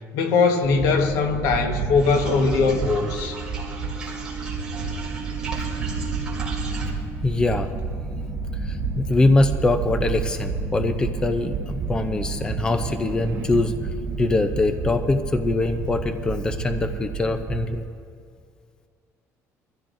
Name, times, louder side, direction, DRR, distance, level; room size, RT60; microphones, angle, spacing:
voice 1, 0.1-3.4, left 4 dB, 80° left, 5 dB, 1.3 m, -21 dB
sound 1, 0.6-17.8, right 4 dB, 40° right, 1.5 m, -30 dB
sound 2, 1.9-6.9, right 4 dB, 15° right, 3.0 m, -35 dB
voice 2, 7.2-7.7 8.6-13.7 14.2-17.8, left 2 dB, 15° left, 8 dB, 0.5 m, -23 dB
23.5 x 15.0 x 2.6 m, 2.3 s
cardioid pair, 170°, 6 cm